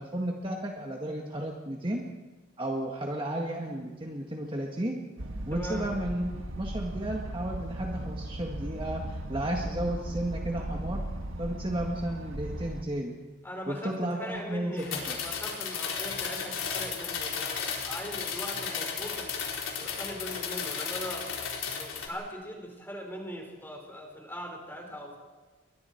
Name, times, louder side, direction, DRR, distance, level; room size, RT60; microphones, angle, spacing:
voice 1, 0.0-2.0 2.6-5.0 5.5-11.0 11.4-13.1 13.7-15.2, right 1 dB, 25° right, 0 dB, 1.8 m, -33 dB
sound 1, 5.2-12.8, right 1 dB, 65° right, 1.6 m, -37 dB
voice 2, 5.5-5.8 13.4-13.9 14.2-19.4 19.8-21.2 21.6-25.2, equal, 10° left, 1 dB, 4.8 m, -40 dB
sound 2, 14.8-22.1, left 6 dB, 70° left, 4.3 m, -34 dB
30.0 x 23.5 x 4.6 m, 1.2 s
head